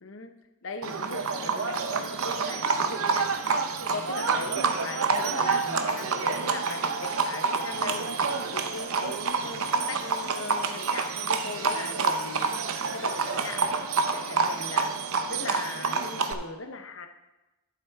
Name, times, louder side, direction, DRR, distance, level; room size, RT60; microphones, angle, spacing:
voice 1, 0.0-3.3 3.9-8.1 8.5-12.5 12.9-13.8 14.1-15.0 15.3-17.1, left 4 dB, 60° left, 7 dB, 0.8 m, -38 dB
Livestock farm animals working animals, 0.8-16.3, right 4 dB, 75° right, 0.7 m, -28 dB
sound 1, 2.5-13.6, equal, 5° right, 3.3 m, -48 dB
12.0 x 7.5 x 3.5 m, 1.0 s
head